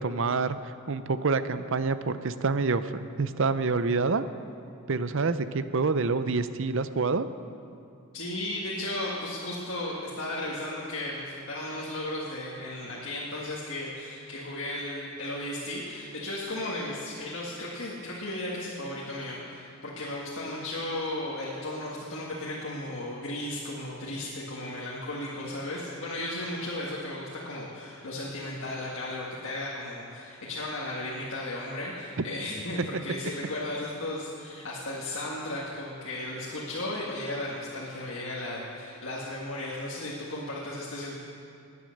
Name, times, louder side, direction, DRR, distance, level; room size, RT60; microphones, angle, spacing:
voice 1, 0.0-2.9 3.2-4.2 4.9-7.3 32.2-32.3, right 4 dB, 60° right, 12 dB, 0.6 m, -27 dB
voice 2, 8.1-41.2, left 1 dB, 60° left, -5 dB, 1.8 m, -35 dB
19.0 x 9.5 x 6.5 m, 2.5 s
head